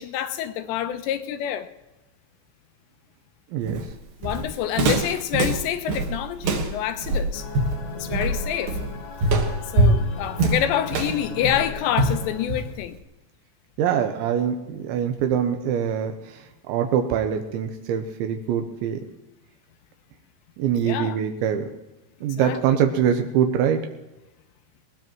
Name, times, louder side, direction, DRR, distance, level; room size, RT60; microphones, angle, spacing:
voice 1, 0.0-1.7 4.2-7.5 8.0-8.8 9.6-13.0 20.7-21.2 22.4-22.8, left 10 dB, 80° left, 2.8 m, -27 dB
Walk footsteps, 3.7-12.9, right 2 dB, 60° right, 2.8 m, -24 dB
sound 1, 7.3-12.7, left 4 dB, 60° left, 2.1 m, -38 dB
voice 2, 13.8-16.1 16.7-19.0 20.6-21.7 22.2-23.8, right 8 dB, 85° right, 3.1 m, -23 dB
20.0 x 19.5 x 3.1 m
omnidirectional pair, 5.3 m